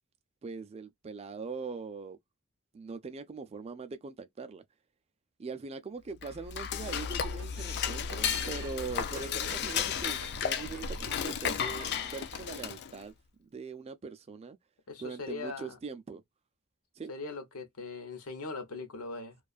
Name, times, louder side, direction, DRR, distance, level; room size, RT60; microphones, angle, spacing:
voice 1, 0.4-2.2 2.7-4.6 5.4-13.1 13.4-14.6 15.0-16.2 17.0-17.1, right 4 dB, 30° right, 0.3 m, -41 dB
Dishes pots and pans / Cutlery silverware, 6.1-13.0, left 7 dB, 50° left, 0.3 m, -34 dB
sound 1, 7.0-12.7, right 3 dB, 75° right, 0.6 m, -50 dB
voice 2, 14.9-15.8 17.1-19.4, left 3 dB, 75° left, 0.8 m, -40 dB
2.4 x 2.3 x 2.3 m
head